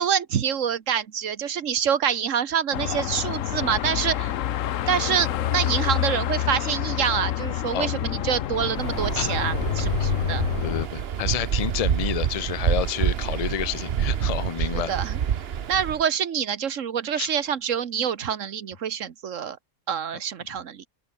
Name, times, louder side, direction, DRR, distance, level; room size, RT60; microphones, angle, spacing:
voice 1, 0.0-4.3 4.9-10.5 14.7-15.2 15.7-19.6 19.9-20.9, right 8 dB, 70° right, 1.5 m, -26 dB
Car passing by / Traffic noise roadway noise / Engine, 2.7-10.9, left 11 dB, 75° left, 1.1 m, -27 dB
Waves surf, 8.7-16.0, right 8 dB, 55° right, 1.0 m, -27 dB
voice 2, 10.6-14.9 17.2-17.3, left 10 dB, 50° left, 0.4 m, -29 dB
omnidirectional pair, 1.4 m